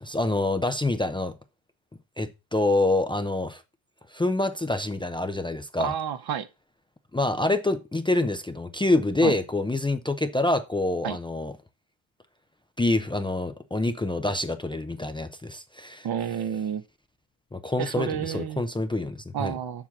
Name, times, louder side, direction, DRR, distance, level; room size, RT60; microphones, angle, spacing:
voice 1, 0.0-1.3 2.2-3.6 4.1-5.9 7.1-11.5 12.8-16.1 17.5-19.5, left 2 dB, 10° left, 0.6 m, -26 dB
voice 2, 5.8-6.5 9.2-9.3 11.0-11.2 16.0-16.8 17.8-18.6 19.3-19.9, right 9 dB, 45° right, 1.0 m, -30 dB
7.4 x 5.7 x 6.0 m
cardioid pair, 100°, 50 cm